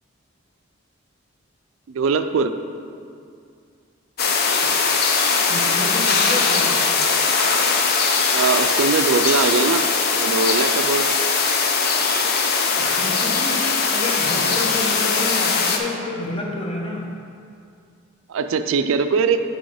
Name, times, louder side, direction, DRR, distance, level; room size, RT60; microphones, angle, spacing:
voice 1, 1.9-2.5 8.3-9.8 10.1-11.1 18.3-19.4, right 5 dB, 75° right, 9 dB, 0.4 m, -21 dB
sound 1, 4.2-15.8, left 4 dB, 50° left, 0.6 m, -20 dB
voice 2, 4.6-6.9 12.8-17.2, left 2 dB, 25° left, -2 dB, 0.9 m, -30 dB
6.3 x 5.1 x 4.9 m, 2.4 s
head